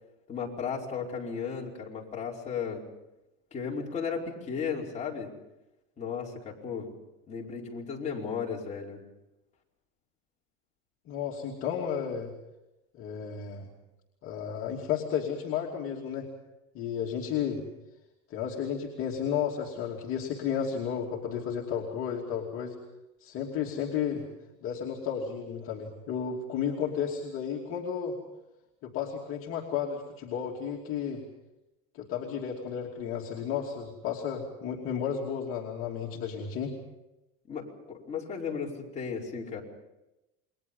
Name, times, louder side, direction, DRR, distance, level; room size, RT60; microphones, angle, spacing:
voice 1, 0.3-2.8 3.5-5.3 6.0-6.9 7.3-9.0 37.5-39.6, left 6 dB, 25° left, -3 dB, 5.1 m, -35 dB
voice 2, 11.1-12.3 12.9-13.7 14.2-16.3 16.7-17.6 18.3-22.7 23.2-24.2 24.6-28.2 28.8-31.2 31.9-36.7, left 8 dB, 45° left, -1 dB, 2.8 m, -33 dB
29.0 x 22.5 x 5.6 m, 0.96 s
cardioid pair, 140°, 29 cm